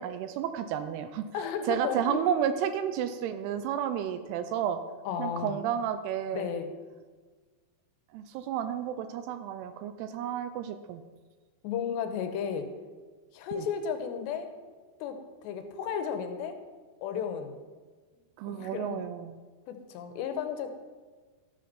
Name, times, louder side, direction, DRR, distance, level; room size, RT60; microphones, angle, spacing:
voice 1, 0.0-1.3 1.7-4.8 5.2-6.5 8.1-11.0 13.5-13.7 18.4-19.3, right 9 dB, 85° right, 10 dB, 2.3 m, -31 dB
voice 2, 1.3-2.2 5.1-5.6 6.3-6.7 11.6-12.7 13.3-14.5 15.0-16.6 17.0-17.6 18.5-19.0 19.7-20.7, left 7 dB, 85° left, 8 dB, 2.9 m, -34 dB
12.5 x 5.2 x 5.7 m, 1.4 s
omnidirectional pair, 5.1 m